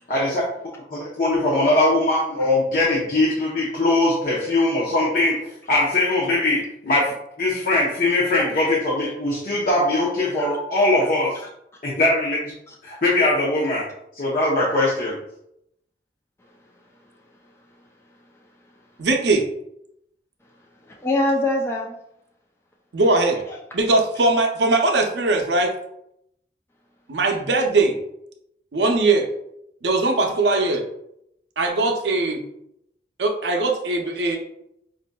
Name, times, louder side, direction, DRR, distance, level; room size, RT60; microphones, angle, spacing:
voice 1, 0.1-0.4 0.9-5.4 5.7-7.1 7.4-11.3 11.8-12.4 12.8-13.8 14.1-15.1, left 2 dB, 50° left, -5 dB, 0.7 m, -21 dB
voice 2, 19.0-19.4 22.9-23.4 23.7-25.7 27.1-28.0 28.7-29.3 29.8-30.8 31.6-32.4 33.2-34.4, right 2 dB, 85° right, 3 dB, 0.6 m, -20 dB
voice 3, 20.8-22.0 23.5-23.6 34.3-34.4, left 1 dB, 15° left, -1 dB, 0.3 m, -24 dB
5.0 x 2.5 x 2.2 m, 0.78 s
head